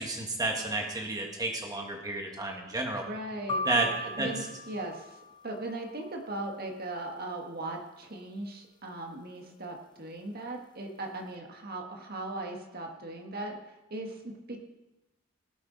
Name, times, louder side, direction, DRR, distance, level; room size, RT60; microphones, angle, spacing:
voice 1, 0.0-3.0 3.7-3.9 4.2-4.3, right 2 dB, 20° right, 1 dB, 1.7 m, -31 dB
voice 2, 3.0-14.6, right 2 dB, 45° right, 2 dB, 1.6 m, -39 dB
sound 1, 3.5-5.6, equal, 20° left, 0.7 m, -36 dB
18.5 x 7.9 x 4.0 m, 1.0 s
head